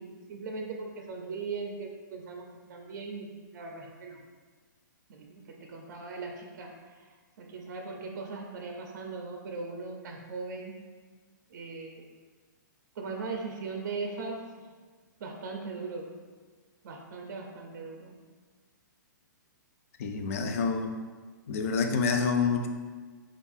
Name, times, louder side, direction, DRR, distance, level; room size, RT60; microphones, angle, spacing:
voice 1, 0.0-2.4 2.7-4.2 5.1-6.7 7.4-10.7 11.5-12.1 13.0-14.4 15.2-16.1 16.8-18.2, right 4 dB, 55° right, 2 dB, 0.5 m, -39 dB
voice 2, 20.0-20.9 21.5-22.7, left 5 dB, 45° left, 5 dB, 0.4 m, -27 dB
4.3 x 2.4 x 3.5 m, 1.5 s
hypercardioid pair, 160°, 11 cm